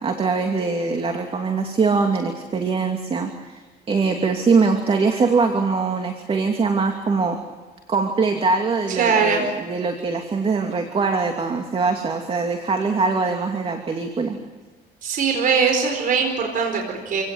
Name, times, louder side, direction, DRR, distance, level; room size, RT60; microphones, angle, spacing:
voice 1, 0.0-3.6 3.9-7.4 7.9-14.4, right 4 dB, 35° right, 4 dB, 2.7 m, -22 dB
voice 2, 8.9-9.5 15.0-17.2, right 5 dB, 55° right, 3 dB, 4.5 m, -21 dB
27.5 x 17.5 x 8.1 m, 1.3 s
cardioid pair, 110°, 17 cm